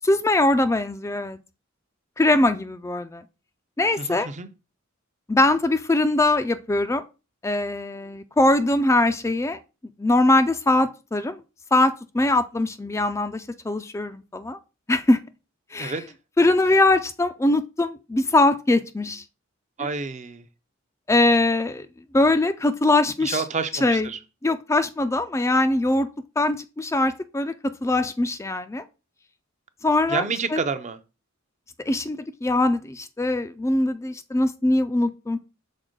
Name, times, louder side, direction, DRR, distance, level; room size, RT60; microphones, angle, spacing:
voice 1, 0.0-1.4 2.2-3.2 3.8-4.3 5.3-7.0 7.4-9.6 10.0-11.4 11.7-14.6 14.9-15.2 15.7-15.9 16.4-19.2 19.8-19.9 21.1-21.9 22.1-23.4 23.8-24.1 24.4-26.1 26.4-28.8 29.8-30.3 30.5-30.6 31.9-35.4, left 2 dB, 15° left, 0.3 m, -22 dB
voice 2, 4.0-4.5 15.8-16.0 19.8-20.4 23.2-24.2 30.1-31.0, right 4 dB, 35° right, 0.6 m, -29 dB
6.4 x 4.3 x 3.7 m
head